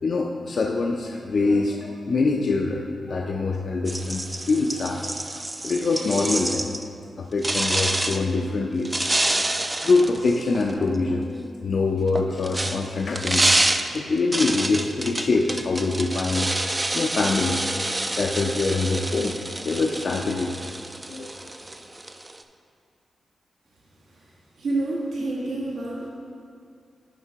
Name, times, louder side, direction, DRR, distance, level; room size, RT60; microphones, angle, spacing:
voice 1, 0.0-5.1 5.6-6.7 7.2-8.9 9.8-13.6 13.9-16.5 16.9-17.6 18.1-19.4 19.6-20.6 21.1-21.5, left 3 dB, 55° left, 1 dB, 0.4 m, -24 dB
sound 1, 3.9-6.9 7.4-8.2 8.8-11.0 12.0-22.4, right 1 dB, 15° right, 0.3 m, -27 dB
voice 2, 24.6-26.1, right 2 dB, 85° right, -5 dB, 1.4 m, -28 dB
10.5 x 3.7 x 4.5 m, 2.3 s
wide cardioid pair, 130°, 0 cm